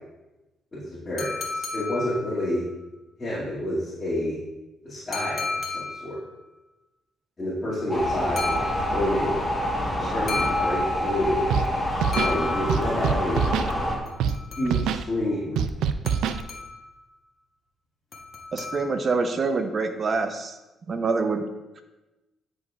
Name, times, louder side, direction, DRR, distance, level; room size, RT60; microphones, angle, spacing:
voice 1, 0.7-2.6 3.2-4.4 4.8-6.2 7.4-9.4 10.0-11.4 12.1-13.4 14.6-15.6, left 1 dB, 30° left, -10 dB, 2.3 m, -29 dB
sound 1, 1.2-2.7 5.1-6.3 8.4-9.2 10.3-11.3 12.1-13.1 14.1-15.0 16.1-17.0 18.1-19.2, left 3 dB, 45° left, 1.2 m, -33 dB
sound 2, 7.9-14.0, left 1 dB, 15° left, 1.3 m, -27 dB
Scratching (performance technique), 11.5-11.7 11.9-12.3 12.7-13.7 14.2-14.4 14.6-15.0 15.6-16.4, right 7 dB, 85° right, 0.3 m, -25 dB
voice 2, 18.5-20.6 20.9-21.4 21.8-21.9, right 4 dB, 45° right, 7 dB, 0.7 m, -26 dB
9.9 x 5.1 x 2.5 m, 1.0 s
cardioid pair, 90°, 0 cm